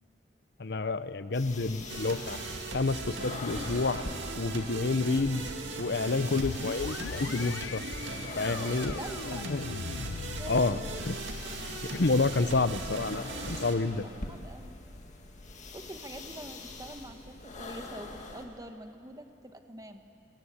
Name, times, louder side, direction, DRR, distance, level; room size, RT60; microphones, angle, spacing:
voice 1, 0.6-2.4 2.7-4.0 4.4-5.5 5.8-7.8 8.4-9.0 9.3-9.6 10.5-10.8 11.0-11.2 11.9-14.1, left 3 dB, 60° left, 13 dB, 0.8 m, -29 dB
sound 1, 1.3-18.5, left 2 dB, 40° left, 2.1 m, -44 dB
sound 2, 1.9-13.7, right 3 dB, 80° right, 2.3 m, -39 dB
sound 3, 6.4-16.0, left 5 dB, 90° left, 0.4 m, -43 dB
voice 2, 8.6-9.5 10.4-11.0 12.3-12.5 14.0-14.8 15.7-20.0, right 1 dB, 20° right, 7 dB, 1.2 m, -45 dB
21.0 x 18.5 x 8.9 m, 2.5 s
head